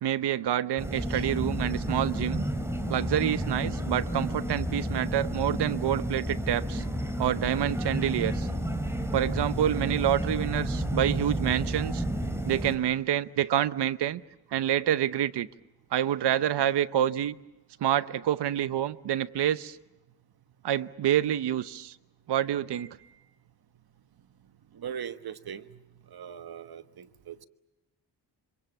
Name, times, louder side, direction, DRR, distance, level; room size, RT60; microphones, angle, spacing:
voice 1, 0.0-2.4 2.9-6.8 7.2-8.5 9.1-12.0 12.5-14.2 14.5-15.5 15.9-17.4 17.8-19.8 20.6-21.9 22.3-22.9, right 11 dB, 85° right, 0.9 m, -27 dB
sound 1, 0.8-12.8, equal, 5° right, 4.9 m, -31 dB
voice 2, 22.7-23.1 24.7-25.8 26.1-27.4, right 8 dB, 65° right, 1.3 m, -40 dB
27.0 x 26.0 x 7.2 m
cardioid pair, 80°, 40 cm